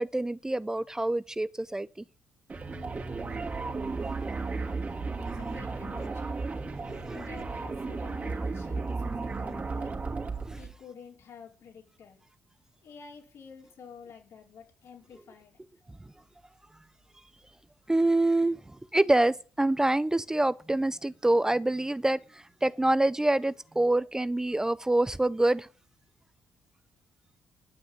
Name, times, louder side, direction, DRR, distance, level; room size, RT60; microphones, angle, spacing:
voice 1, 0.0-2.0 17.9-18.6 18.9-25.7, right 2 dB, 10° right, 0.5 m, -26 dB
sound 1, 2.5-10.7, right 3 dB, 30° right, 2.7 m, -34 dB
voice 2, 5.2-6.4 6.9-9.9 10.5-12.2 12.8-15.6, left 6 dB, 65° left, 4.6 m, -49 dB
11.0 x 6.1 x 8.7 m
cardioid pair, 75°, 5 cm